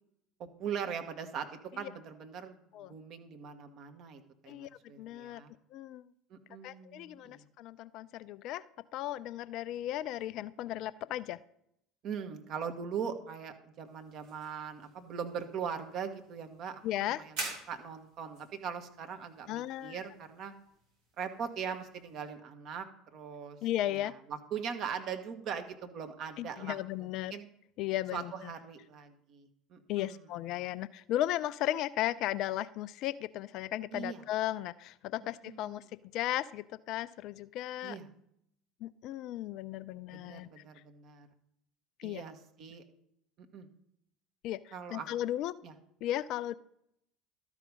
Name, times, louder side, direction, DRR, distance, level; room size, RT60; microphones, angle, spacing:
voice 1, 0.4-1.5 1.8-2.6 2.8-5.5 6.3-7.5 12.0-17.4 17.7-20.5 21.2-22.9 23.1-23.6 23.9-27.5 28.1-30.2 33.9-34.2 35.4-35.8 37.8-38.1 40.1-41.3 42.0-42.8 43.5-43.7 44.7-45.1 45.6-45.7, right 7 dB, 45° right, 6 dB, 1.1 m, -41 dB
voice 2, 5.0-5.4 5.7-6.1 6.6-8.6 8.9-11.4 16.8-17.2 19.5-20.0 23.6-24.1 26.4-27.3 27.8-28.5 29.9-35.8 36.1-38.0 38.8-40.6 42.0-42.2 44.4-45.5 46.0-46.5, left 13 dB, 50° left, 17 dB, 0.3 m, -35 dB
sound 1, 13.8-22.3, right 2 dB, 65° right, 3.8 m, -48 dB
12.5 x 4.9 x 5.4 m, 0.75 s
figure-of-eight pair, 65°, 0 cm